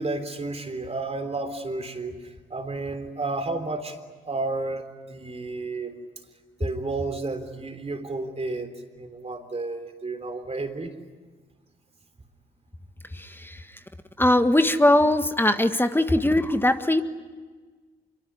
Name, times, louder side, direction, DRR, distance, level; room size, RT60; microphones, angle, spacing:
voice 1, 0.0-4.0 4.3-6.0 6.6-10.9, right 3 dB, 30° right, 7 dB, 3.6 m, -32 dB
voice 2, 13.1-13.6 14.2-17.0, left 1 dB, 10° left, 9 dB, 1.6 m, -21 dB
25.5 x 24.0 x 9.7 m, 1.4 s
supercardioid pair, 55°, 20 cm